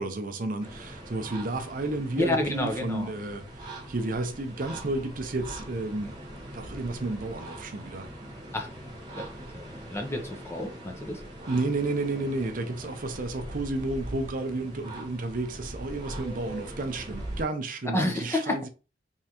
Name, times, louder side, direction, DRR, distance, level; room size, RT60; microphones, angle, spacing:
voice 1, 0.0-6.2 6.5-8.1 11.5-18.7, right 2 dB, 50° right, 0.6 m, -32 dB
sound 1, 0.6-17.4, right 1 dB, 25° right, 1.2 m, -41 dB
voice 2, 2.2-3.1 8.5-8.7 9.2-9.3 9.5-11.2 17.9-18.6, left 2 dB, 15° left, 0.7 m, -29 dB
3.6 x 3.2 x 2.9 m
head